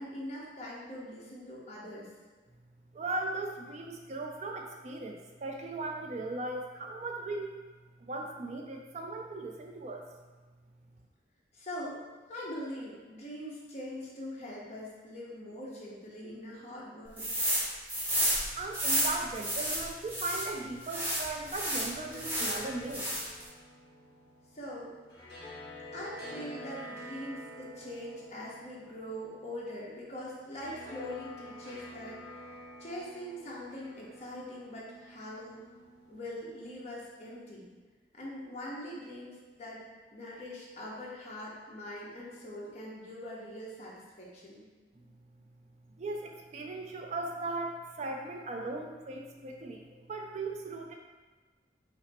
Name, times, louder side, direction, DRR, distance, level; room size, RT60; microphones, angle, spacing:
voice 1, 0.0-2.1 11.5-17.3 24.5-24.9 25.9-35.6 36.1-37.7 38.1-39.8 40.1-44.6, left 1 dB, 40° left, -5 dB, 1.1 m, -42 dB
voice 2, 2.9-7.5 8.0-10.1 18.6-23.1 45.0-45.1 46.0-49.8 50.1-50.9, right 2 dB, 40° right, 2 dB, 0.4 m, -38 dB
sound 1, 17.2-17.6 17.9-20.5 20.9-22.6 22.9-23.4, right 1 dB, 10° right, 0.9 m, -31 dB
sound 2, 21.8-36.8, left 1 dB, 65° left, 1.5 m, -48 dB
5.7 x 2.0 x 4.2 m, 1.3 s
head